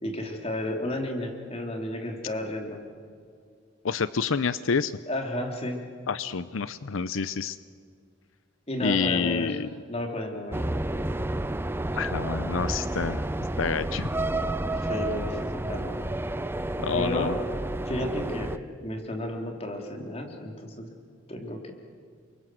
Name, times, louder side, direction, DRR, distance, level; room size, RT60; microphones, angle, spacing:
voice 1, 0.0-2.8 5.1-5.8 8.7-9.6 9.9-10.6 14.7-16.0 16.9-17.4 17.9-18.5 18.8-20.9 21.3-21.7, left 1 dB, 30° left, 2 dB, 3.3 m, -32 dB
voice 2, 3.8-4.9 6.1-7.6 8.8-9.7 11.9-13.2 13.6-14.1 16.8-17.3, left 5 dB, 85° left, 15 dB, 0.6 m, -28 dB
sound 1, 10.5-18.6, right 1 dB, 10° right, 0.6 m, -30 dB
29.0 x 23.5 x 7.7 m, 2.1 s
head